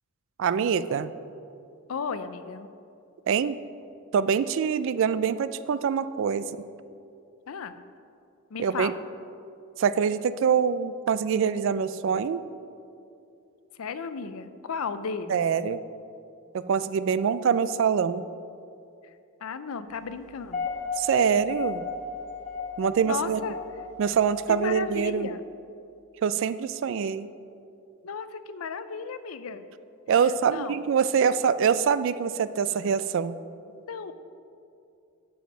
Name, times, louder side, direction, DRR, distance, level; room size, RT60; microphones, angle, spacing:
voice 1, 0.4-1.1 3.3-3.6 4.1-6.5 8.6-8.9 9.8-12.4 15.3-15.8 16.5-18.2 21.0-21.8 22.8-23.4 24.0-25.3 26.2-27.3 30.1-33.4, right 7 dB, 60° right, 14 dB, 0.3 m, -24 dB
voice 2, 1.9-2.7 7.5-7.8 8.5-9.0 13.7-15.4 19.0-19.2 19.4-20.7 23.0-23.6 24.5-25.4 28.0-29.7 30.2-30.8 33.8-34.1, left 5 dB, 75° left, 12 dB, 0.5 m, -34 dB
sound 1, 20.3-25.2, left 4 dB, 35° left, 1.0 m, -35 dB
7.6 x 7.1 x 5.5 m, 2.6 s
head